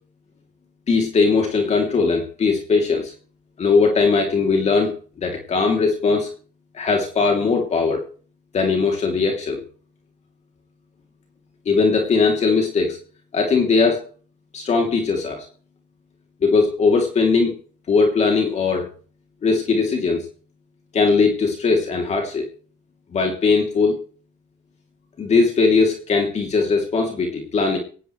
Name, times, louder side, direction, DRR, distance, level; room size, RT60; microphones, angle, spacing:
voice 1, 0.9-3.1 3.6-6.3 6.7-8.0 8.5-9.6 11.6-13.0 13.3-14.1 14.5-15.5 16.4-17.5 17.9-18.9 19.4-20.2 20.9-22.4 23.1-23.9 25.2-27.8, left 4 dB, 40° left, 2 dB, 3.1 m, -19 dB
18.0 x 17.5 x 3.3 m, 0.41 s
cardioid pair, 110°, 17 cm